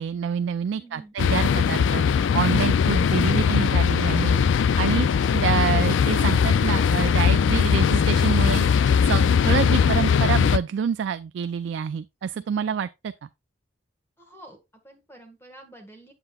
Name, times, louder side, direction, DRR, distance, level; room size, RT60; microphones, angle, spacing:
voice 1, 0.0-4.4 4.8-5.1 5.3-13.1, right 7 dB, 70° right, 0.3 m, -27 dB
voice 2, 0.7-1.1 12.3-12.8 14.2-16.1, right 2 dB, 10° left, 1.5 m, -48 dB
sound 1, 1.2-10.6, left 7 dB, 80° left, 0.3 m, -20 dB
7.8 x 7.5 x 2.3 m
head